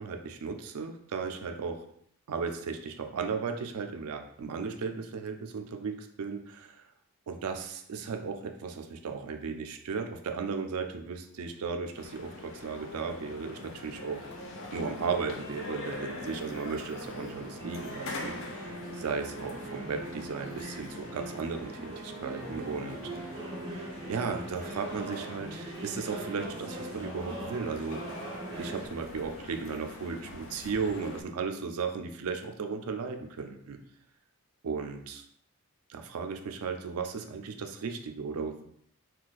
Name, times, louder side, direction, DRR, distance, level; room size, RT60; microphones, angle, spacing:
voice 1, 0.0-1.8 2.3-6.8 7.3-14.2 14.7-23.2 24.1-28.0 28.6-33.8 34.6-35.2 35.9-38.6, right 5 dB, 80° right, 5 dB, 0.4 m, -35 dB
sound 1, 12.0-31.2, left 3 dB, 60° left, 0.4 m, -44 dB
sound 2, 12.6-28.9, right 2 dB, 25° right, 0.6 m, -42 dB
2.5 x 2.2 x 3.9 m, 0.69 s
head